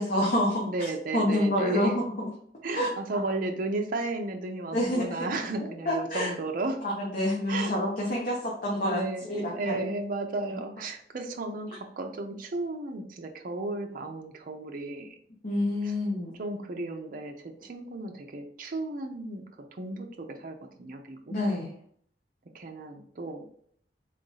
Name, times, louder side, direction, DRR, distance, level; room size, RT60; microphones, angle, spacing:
voice 1, 0.0-0.7 1.1-2.3 2.7-2.9 4.7-5.3 5.9-6.3 6.8-9.9 15.4-16.4 21.3-21.7, left 1 dB, 50° left, -4 dB, 0.9 m, -27 dB
voice 2, 0.7-1.9 2.6-6.8 7.5-7.7 8.8-15.2 15.8-15.9 16.4-19.4 19.7-21.3 22.5-23.4, right 2 dB, 50° right, 3 dB, 0.5 m, -34 dB
3.8 x 2.5 x 3.9 m, 0.62 s
head